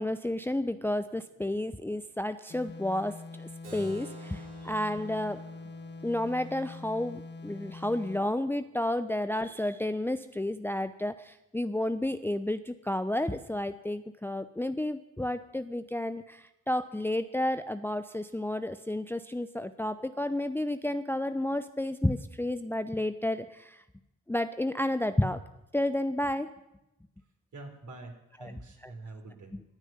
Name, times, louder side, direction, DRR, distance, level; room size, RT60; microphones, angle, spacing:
voice 1, 0.0-5.4 6.0-23.8 24.3-25.4 25.7-26.5 28.4-28.5 28.8-28.9 29.5-29.6, left 1 dB, 5° left, 11 dB, 0.7 m, -31 dB
sound 1, 2.5-8.3, left 3 dB, 30° left, 1.0 m, -44 dB
Keyboard (musical), 3.6-8.7, right 2 dB, 80° right, 5.1 m, -52 dB
voice 2, 27.5-29.5, right 2 dB, 50° right, 3 dB, 4.3 m, -46 dB
17.5 x 6.5 x 9.4 m, 0.90 s
hypercardioid pair, 40°, 37 cm